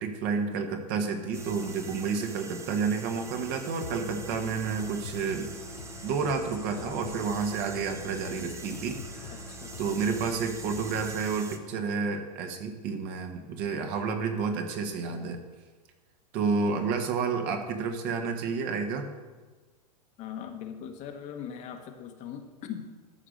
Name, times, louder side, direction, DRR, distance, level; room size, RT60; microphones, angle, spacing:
voice 1, 0.0-5.5 6.0-9.5 9.8-15.4 16.3-19.1, right 5 dB, 40° right, 5 dB, 1.5 m, -30 dB
sound 1, 1.3-11.6, right 4 dB, 15° right, 0.9 m, -44 dB
sound 2, 3.8-11.2, left 5 dB, 80° left, 0.7 m, -45 dB
voice 2, 9.5-10.0 20.2-22.9, left 8 dB, 35° left, 5 dB, 1.3 m, -40 dB
13.0 x 5.1 x 6.5 m, 1.3 s
hypercardioid pair, 105°, 21 cm